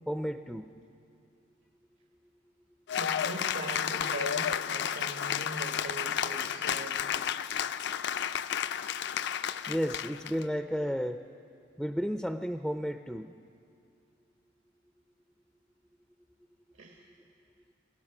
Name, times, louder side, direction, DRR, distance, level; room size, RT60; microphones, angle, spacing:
voice 1, 0.1-0.7 6.6-6.8 9.7-11.2 11.8-13.3, equal, ahead, 7 dB, 0.4 m, -33 dB
Cheering / Applause, 2.9-10.4, left 9 dB, 60° left, 0.4 m, -32 dB
voice 2, 3.0-7.1 16.7-17.0, right 2 dB, 80° right, 0 dB, 1.6 m, -41 dB
27.0 x 17.0 x 6.0 m, 2.5 s
head